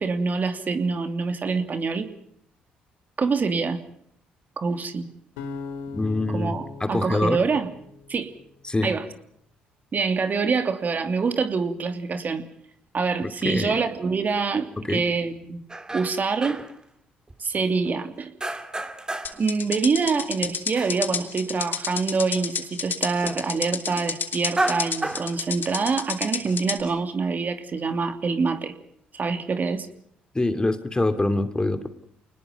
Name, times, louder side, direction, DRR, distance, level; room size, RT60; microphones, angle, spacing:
voice 1, 0.0-2.1 3.2-3.8 4.6-5.1 6.3-7.7 8.1-8.3 8.8-9.0 9.9-12.4 12.9-15.6 15.9-16.6 17.4-18.3 19.4-28.7 29.1-29.9, right 4 dB, 40° right, 8 dB, 2.9 m, -25 dB
sound 1, 5.4-8.5, left 4 dB, 80° left, 2.7 m, -39 dB
voice 2, 5.9-7.4 8.6-8.9 13.2-13.8 14.9-15.0 30.3-31.9, left 2 dB, 20° left, 10 dB, 2.7 m, -25 dB
sound 2, 15.7-16.8 17.3-18.0 18.4-19.5 19.7-21.7 22.0-22.1 22.3-22.5 23.2-23.5 24.3-25.9 26.5-26.9, right 2 dB, 20° right, 2.5 m, -32 dB
sound 3, 19.2-26.8, left 6 dB, 50° left, 3.2 m, -30 dB
29.5 x 20.0 x 5.4 m, 0.68 s
hypercardioid pair, 50°, 4 cm